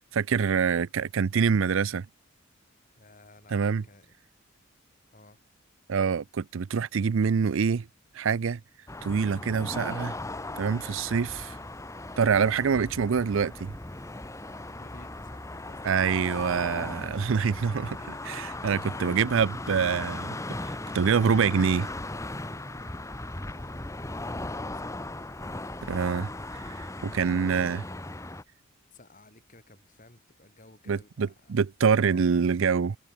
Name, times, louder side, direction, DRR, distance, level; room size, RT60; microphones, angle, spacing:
voice 1, 0.1-2.1 3.5-3.8 5.9-7.9 8.1-8.6 9.0-10.2 10.6-11.6 12.2-13.7 15.8-17.9 18.3-20.4 20.6-21.9 25.8-26.3 26.6-27.8 30.9-33.0, right 6 dB, 65° right, 0.4 m, -25 dB
voice 2, 3.0-4.1 5.1-5.4 14.6-16.3 17.5-18.2 18.8-19.5 23.4-25.1 27.1-28.0 28.9-31.5 31.9-32.4, left 2 dB, 40° left, 4.8 m, -54 dB
sound 1, 8.9-28.4, left 2 dB, 15° left, 1.2 m, -38 dB
head